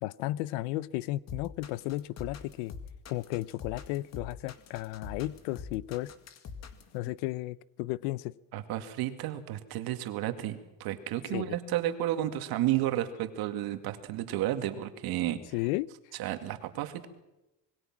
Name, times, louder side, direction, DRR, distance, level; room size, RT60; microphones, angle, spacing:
voice 1, 0.0-2.7 3.1-6.1 6.9-8.3 11.3-11.6 15.5-15.9, left 17 dB, 85° left, 21 dB, 0.8 m, -34 dB
sound 1, 1.3-6.9, left 5 dB, 40° left, 2.2 m, -44 dB
voice 2, 8.5-15.4 16.2-17.1, right 13 dB, 60° right, 8 dB, 2.3 m, -32 dB
26.5 x 21.0 x 6.1 m, 0.97 s
cardioid pair, 145°, 42 cm